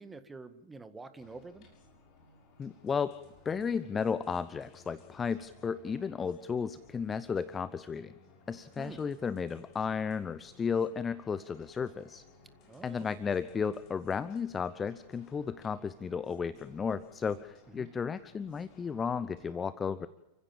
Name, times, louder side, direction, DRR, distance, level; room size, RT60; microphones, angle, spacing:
voice 1, 0.0-1.7 8.8-9.0 12.7-13.1 17.7-17.9, right 3 dB, 10° right, 11 dB, 1.8 m, -47 dB
sound 1, 1.2-19.5, left 3 dB, 40° left, 7.0 m, -60 dB
voice 2, 2.6-3.2 3.4-8.1 8.5-12.2 12.8-20.1, left 6 dB, 20° left, 15 dB, 0.8 m, -34 dB
29.5 x 16.0 x 7.3 m, 0.93 s
figure-of-eight pair, 90°, 0 cm